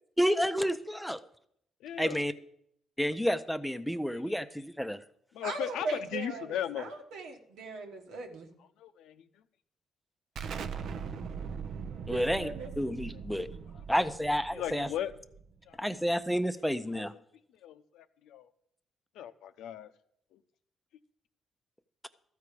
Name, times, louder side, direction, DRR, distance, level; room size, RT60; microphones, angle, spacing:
voice 1, 0.2-1.2 2.0-2.3 3.0-5.0 12.1-12.5 12.8-13.5 13.9-14.9 15.8-17.1, equal, ahead, 11 dB, 0.6 m, -30 dB
voice 2, 1.8-2.2 4.1-4.3 5.3-6.9 8.8-9.2 10.7-10.8 11.4-11.5 14.5-15.1 15.7-15.8 16.9-17.1 17.6-18.5 19.2-19.9 20.3-20.4, left 10 dB, 85° left, 9 dB, 0.7 m, -37 dB
voice 3, 5.4-8.5 12.1-12.7, right 3 dB, 85° right, 3 dB, 1.5 m, -39 dB
Explosion, 10.4-15.8, right 6 dB, 65° right, 0.6 m, -41 dB
13.5 x 4.7 x 8.4 m, 0.71 s
cardioid pair, 90°, 0 cm